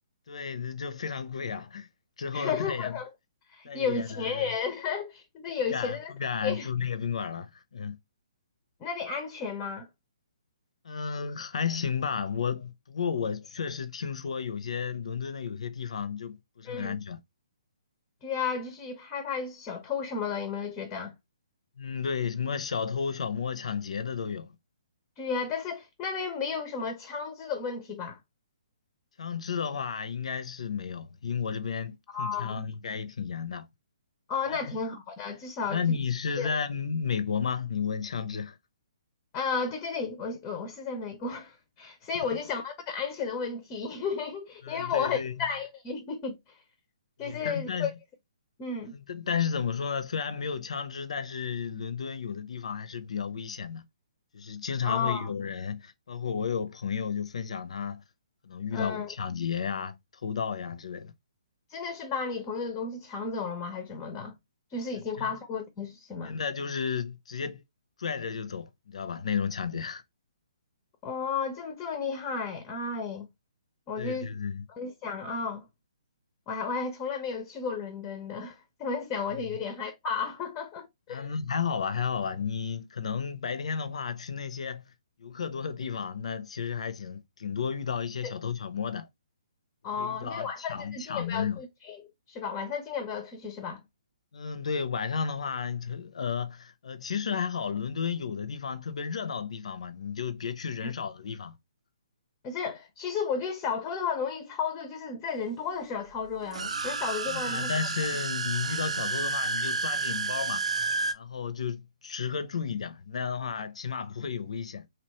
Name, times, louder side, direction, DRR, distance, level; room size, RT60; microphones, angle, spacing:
voice 1, 0.3-1.9 2.2-3.0 3.6-4.5 5.7-8.0 10.8-17.2 21.8-24.5 29.2-33.7 34.5-34.6 35.7-38.6 42.1-42.2 44.6-45.5 47.2-47.9 48.9-53.8 54.3-58.0 58.4-60.0 60.2-61.1 65.2-65.4 66.2-67.6 68.0-70.0 74.0-74.6 81.1-84.9 85.2-89.1 90.0-91.6 94.3-101.5 107.3-110.8 111.1-114.9, left 6 dB, 70° left, 0.5 m, -33 dB
voice 2, 2.3-3.1 3.5-6.1 6.4-6.7 8.8-9.9 16.6-17.0 18.2-21.1 25.2-28.2 32.1-32.6 34.3-36.0 36.4-36.6 39.3-46.4 47.2-47.9 48.6-48.9 54.8-55.3 58.7-59.1 61.7-64.3 64.7-66.4 71.0-73.3 73.9-74.4 74.7-75.7 76.5-81.3 88.2-88.4 89.8-92.0 92.3-93.8 100.8-100.9 102.4-107.7, left 5 dB, 20° left, 0.4 m, -33 dB
sound 1, 106.4-111.1, right 4 dB, 85° right, 0.4 m, -31 dB
2.9 x 2.1 x 2.9 m
hypercardioid pair, 150°, 3 cm